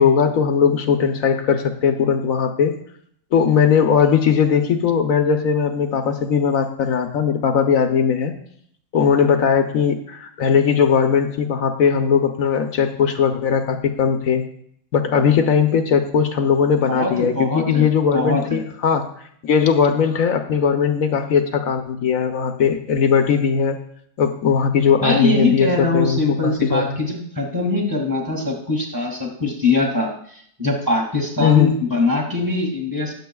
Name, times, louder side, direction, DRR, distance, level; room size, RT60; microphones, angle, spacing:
voice 1, 0.0-2.7 3.3-8.3 8.9-14.4 14.9-19.1 19.4-23.8 24.2-27.0 31.4-31.7, left 7 dB, 55° left, 6 dB, 1.1 m, -19 dB
voice 2, 16.9-17.9 18.1-18.6 25.0-33.1, left 3 dB, 10° right, 0 dB, 2.1 m, -22 dB
20.0 x 7.5 x 2.3 m, 0.65 s
omnidirectional pair, 1.9 m